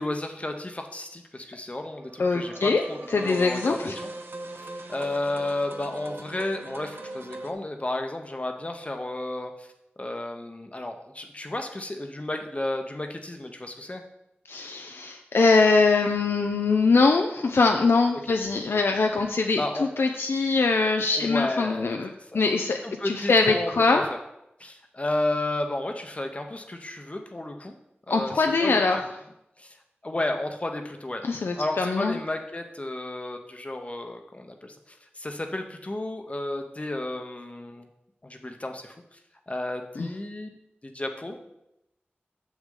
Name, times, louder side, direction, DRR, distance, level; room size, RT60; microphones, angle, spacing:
voice 1, 0.0-4.1 4.9-9.7 10.0-14.0 18.3-18.4 19.6-19.9 21.1-22.4 22.8-24.2 24.6-27.8 28.1-28.8 29.6-29.8 30.0-31.3 31.5-37.9 38.2-39.2 39.5-40.6 40.8-41.4, left 1 dB, 35° left, 4 dB, 0.7 m, -32 dB
sound 1, 1.9-7.5, right 2 dB, 70° right, 0.7 m, -41 dB
voice 2, 2.2-2.8 3.1-4.0 14.5-22.8 23.0-24.0 28.1-29.0 31.2-32.2 40.0-40.1, left 4 dB, 85° left, 3 dB, 0.4 m, -22 dB
6.4 x 6.2 x 3.7 m, 0.85 s
wide cardioid pair, 60°, 4 cm